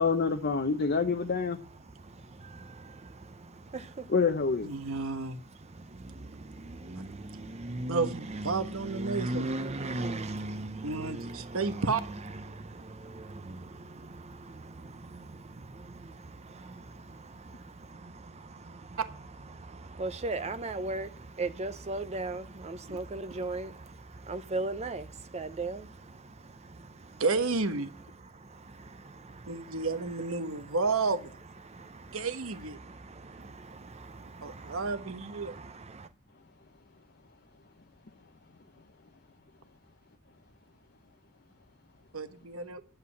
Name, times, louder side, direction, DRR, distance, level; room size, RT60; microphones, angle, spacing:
voice 1, 0.0-1.6 4.1-4.7, left 4 dB, 50° left, 0.7 m, -26 dB
voice 2, 0.6-1.0 1.4-4.1 4.8-27.2 27.8-36.1, right 2 dB, 30° right, 0.7 m, -40 dB
voice 3, 4.6-5.4 7.9-9.5 10.8-12.0 22.9-23.0 27.2-27.9 29.5-31.4 32.1-32.8 34.4-35.5 42.1-42.8, right 4 dB, 85° right, 1.3 m, -31 dB
11.0 x 7.6 x 8.4 m
head